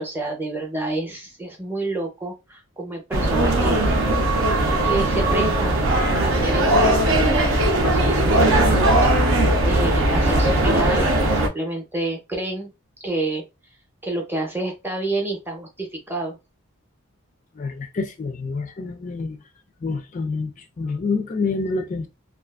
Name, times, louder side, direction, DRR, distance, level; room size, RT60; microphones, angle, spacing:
voice 1, 0.0-3.9 4.8-5.8 6.1-12.7 13.0-13.4 14.0-16.4, right 2 dB, 10° right, 0.6 m, -29 dB
sound 1, 3.1-11.5, right 1 dB, 80° right, 0.6 m, -19 dB
voice 2, 17.6-19.4 19.8-22.1, left 4 dB, 35° left, 0.3 m, -27 dB
2.4 x 2.4 x 2.3 m
head